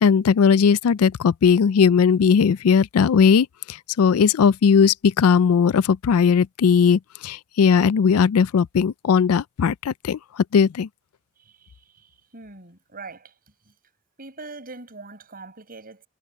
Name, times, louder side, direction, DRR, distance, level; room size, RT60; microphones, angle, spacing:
voice 1, 0.0-10.9, left 6 dB, 75° left, 0.4 m, -18 dB
voice 2, 11.4-13.3 13.7-13.8 14.2-16.1, right 3 dB, 40° right, 7.3 m, -42 dB
head